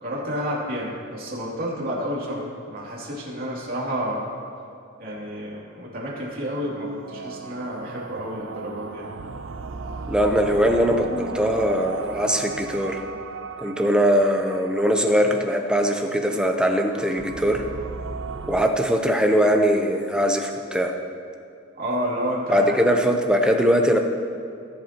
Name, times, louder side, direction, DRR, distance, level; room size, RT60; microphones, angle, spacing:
voice 1, 0.0-4.3 5.0-9.1 21.7-22.8, equal, 45° right, -5 dB, 2.8 m, -30 dB
sound 1, 6.4-18.7, right 4 dB, 65° right, 0.5 m, -37 dB
voice 2, 10.1-13.0 13.6-17.6 18.5-20.9 22.5-24.0, equal, 5° right, 3 dB, 0.7 m, -21 dB
19.0 x 8.0 x 3.0 m, 2.6 s
head